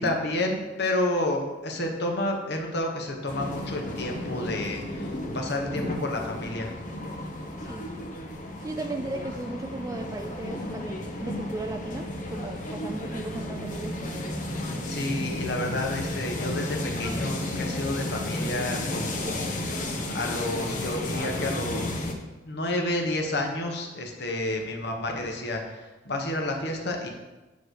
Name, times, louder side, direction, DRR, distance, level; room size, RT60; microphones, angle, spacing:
voice 1, 0.0-6.7 8.9-9.2 14.9-19.8 20.1-22.1 22.4-27.1, left 1 dB, 65° left, 2 dB, 1.2 m, -30 dB
sound 1, 3.3-22.1, left 1 dB, 45° left, 0.9 m, -33 dB
voice 2, 8.6-14.0, right 2 dB, 20° right, 4 dB, 0.4 m, -36 dB
9.4 x 3.2 x 6.3 m, 1.1 s
head